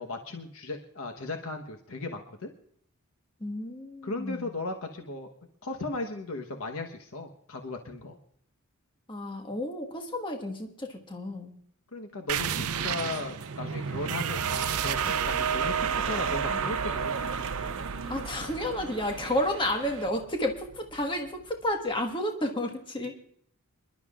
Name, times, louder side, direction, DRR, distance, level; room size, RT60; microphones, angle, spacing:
voice 1, 0.0-2.5 4.0-5.3 5.6-8.2 11.9-17.4, left 2 dB, 65° left, 4 dB, 1.1 m, -36 dB
voice 2, 3.4-4.5 9.1-11.6 18.1-23.1, left 1 dB, 20° left, 2 dB, 1.4 m, -31 dB
sound 1, 12.3-21.5, right 7 dB, 90° right, 0.6 m, -32 dB
sound 2, 12.7-20.1, right 5 dB, 60° right, 1.1 m, -40 dB
27.0 x 11.5 x 2.4 m, 0.66 s
head